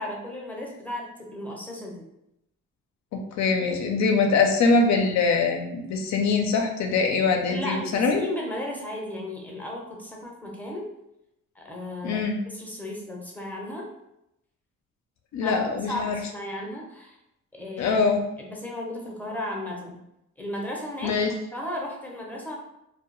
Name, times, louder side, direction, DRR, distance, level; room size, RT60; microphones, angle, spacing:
voice 1, 0.0-2.1 7.5-10.9 11.6-12.2 12.5-13.9 15.4-17.2 17.5-18.0 18.4-20.0 20.4-21.2 21.5-22.6, left 1 dB, 5° left, -2 dB, 0.6 m, -35 dB
voice 2, 3.1-8.2 12.0-12.4 15.3-16.2 17.8-18.2 21.0-21.3, left 4 dB, 65° left, 4 dB, 0.5 m, -23 dB
2.2 x 2.1 x 2.9 m, 0.84 s
cardioid pair, 90°, 30 cm